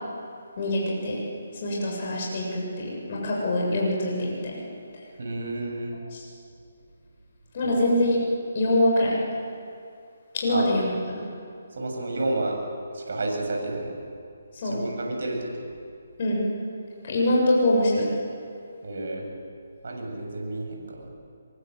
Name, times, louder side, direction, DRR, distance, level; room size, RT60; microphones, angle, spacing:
voice 1, 0.6-1.2 1.6-4.6 6.1-6.3 7.5-8.2 8.5-9.2 10.3-11.2 14.5-14.8 16.2-16.4 17.0-18.1, left 1 dB, 45° left, -3 dB, 7.6 m, -24 dB
voice 2, 5.2-6.0 7.6-7.7 10.5-10.7 11.8-12.6 12.9-14.0 14.6-15.5 18.8-19.3 19.8-21.1, right 2 dB, 65° right, 1 dB, 7.6 m, -30 dB
25.0 x 22.5 x 8.1 m, 2.4 s
figure-of-eight pair, 150°, 0 cm